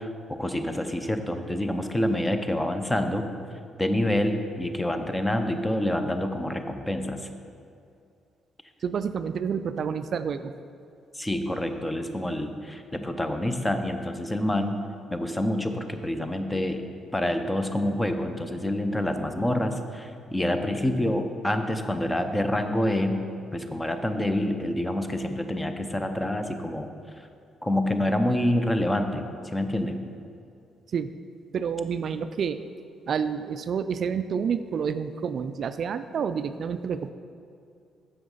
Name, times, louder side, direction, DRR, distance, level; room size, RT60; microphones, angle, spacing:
voice 1, 0.0-3.2 3.8-7.3 11.1-14.8 15.1-16.8 17.1-23.2 23.5-26.9 27.6-30.0, left 1 dB, 15° left, 7 dB, 0.7 m, -27 dB
voice 2, 8.8-10.5 30.9-31.1 31.5-32.6 33.1-37.1, right 7 dB, 55° right, 11 dB, 0.3 m, -29 dB
7.7 x 6.4 x 5.5 m, 2.4 s
cardioid pair, 90°, 0 cm